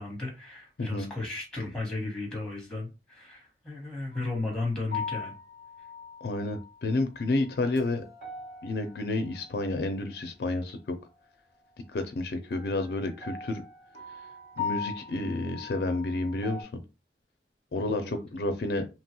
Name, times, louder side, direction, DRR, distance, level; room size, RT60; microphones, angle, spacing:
voice 1, 0.0-5.3 17.9-18.2, left 2 dB, 5° left, 1.0 m, -35 dB
sound 1, 4.1-4.5 4.9-6.7 7.2-10.1 12.5-16.6, left 5 dB, 60° right, 1.4 m, -40 dB
voice 2, 6.2-8.0 8.6-11.0 11.9-13.6 14.6-16.8 17.7-18.9, left 2 dB, 65° left, 0.4 m, -30 dB
2.9 x 2.2 x 2.9 m
head